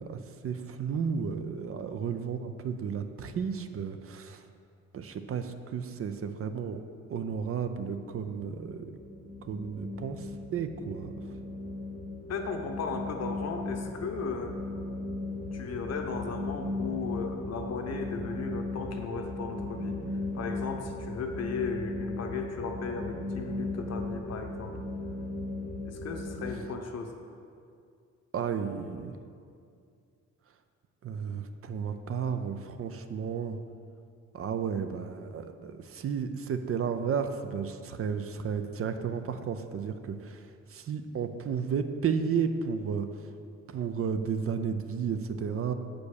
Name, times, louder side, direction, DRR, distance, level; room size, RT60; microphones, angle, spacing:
voice 1, 0.0-4.4 4.9-6.8 7.1-9.0 9.5-11.1 28.3-29.2 31.0-33.6 34.3-43.3 43.7-45.7, right 6 dB, 50° right, 9 dB, 0.6 m, -33 dB
sound 1, 7.8-26.6, left 2 dB, 25° left, 0.9 m, -37 dB
voice 2, 12.3-14.6 15.5-20.0 20.3-24.8 25.9-27.2, left 5 dB, 60° left, 4 dB, 1.0 m, -36 dB
6.9 x 5.2 x 6.5 m, 2.3 s
cardioid pair, 90°, 30 cm